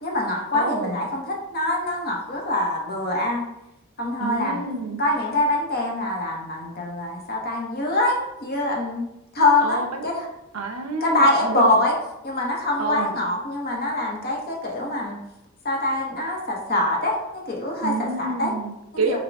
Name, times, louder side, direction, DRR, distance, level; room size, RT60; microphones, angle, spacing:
voice 1, 0.0-3.4 4.0-4.6 5.0-9.1 9.3-10.3 11.0-11.9 12.2-15.2 15.6-18.5 19.1-19.2, left 2 dB, 45° left, -1 dB, 0.9 m, -24 dB
voice 2, 0.5-1.0 4.2-5.0 9.6-10.1 10.5-11.8 12.8-13.1 17.8-19.2, right 3 dB, 75° right, 5 dB, 0.6 m, -28 dB
6.0 x 2.3 x 3.5 m, 0.90 s
head